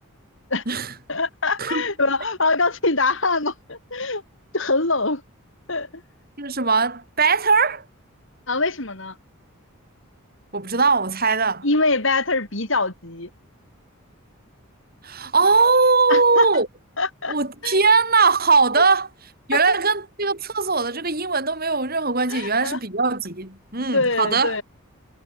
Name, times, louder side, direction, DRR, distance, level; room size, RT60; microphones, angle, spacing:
voice 1, 1.1-4.2 4.5-5.2 5.7-6.0 8.5-9.2 11.6-13.3 16.1-16.5 17.0-17.4 17.6-17.8 18.8-18.9 19.5-19.8 22.3-22.8 23.8-24.6, left 3 dB, 60° left, 4.0 m, -23 dB
voice 2, 6.4-7.8 10.5-11.7 15.0-16.7 17.3-19.1 19.5-24.6, right 4 dB, 45° right, 6.7 m, -20 dB
head